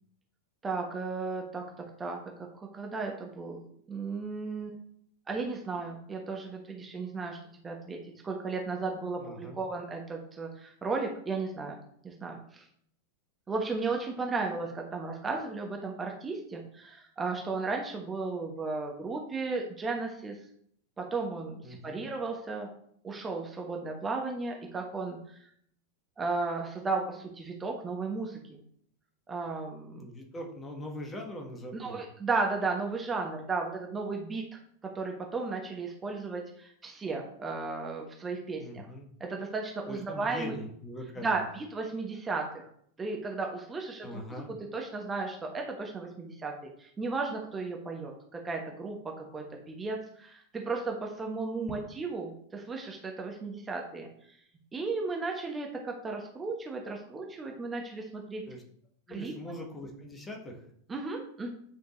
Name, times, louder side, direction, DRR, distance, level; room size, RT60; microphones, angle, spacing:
voice 1, 0.6-1.6 2.0-2.2 2.6-3.6 3.9-4.7 5.3-7.4 7.6-11.8 12.0-12.6 13.5-20.4 21.0-22.7 23.0-25.4 26.2-28.6 29.3-30.0 31.8-34.6 34.9-38.9 39.2-40.6 41.2-42.7 43.0-44.4 44.7-46.5 46.8-54.1 54.7-58.4 59.1-59.3 60.9-61.5, right 3 dB, 15° right, 1 dB, 1.1 m, -34 dB
voice 2, 9.2-9.6 21.6-22.1 29.9-32.0 38.6-39.1 39.9-41.5 44.0-44.5 51.7-51.8 58.5-58.6 59.1-60.6, left 1 dB, 15° left, 1 dB, 1.5 m, -42 dB
9.0 x 5.1 x 3.1 m, 0.66 s
figure-of-eight pair, 90°, 0 cm